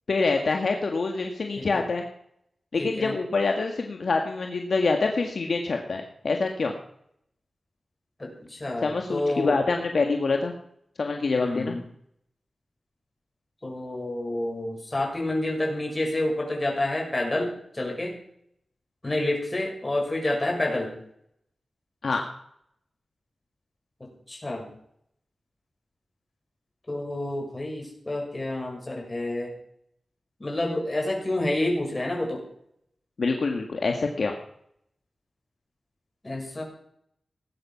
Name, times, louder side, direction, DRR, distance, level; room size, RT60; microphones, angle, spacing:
voice 1, 0.1-2.0 2.7-6.7 8.8-10.5 11.0-11.8 22.0-22.2 33.2-34.3, left 3 dB, 65° left, 3 dB, 1.7 m, -26 dB
voice 2, 2.8-3.1 8.2-9.6 11.4-11.8 13.6-18.2 19.0-20.9 24.0-24.7 26.9-29.5 30.4-32.4 36.2-36.6, left 1 dB, 25° left, 0 dB, 6.4 m, -29 dB
19.0 x 11.5 x 5.9 m, 0.69 s
wide cardioid pair, 125°, 0 cm